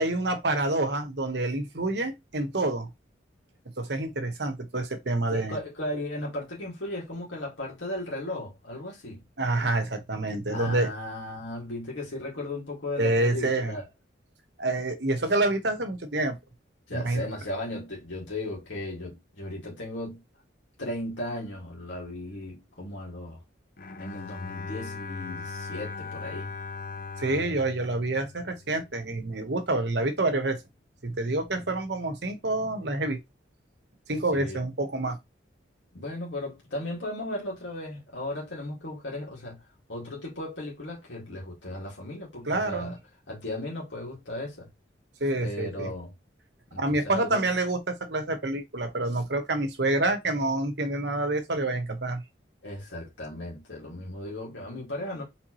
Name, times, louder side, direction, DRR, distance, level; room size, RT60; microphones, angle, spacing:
voice 1, 0.0-2.9 3.8-5.6 9.4-10.9 13.0-13.8 14.6-16.4 16.9-17.3 27.2-30.6 31.0-33.2 34.1-35.2 42.5-42.9 45.2-45.9 46.8-52.2, right 2 dB, 65° right, 1.1 m, -27 dB
voice 2, 5.3-9.2 10.5-13.9 16.9-20.2 20.8-23.4 24.0-26.5 31.5-31.6 34.3-34.6 35.9-39.6 39.9-43.0 43.3-44.7 45.4-46.1 46.7-47.5 52.6-55.2, left 1 dB, 80° left, 2.1 m, -36 dB
Bowed string instrument, 23.8-29.1, left 4 dB, 50° left, 0.6 m, -39 dB
4.6 x 3.5 x 3.0 m
head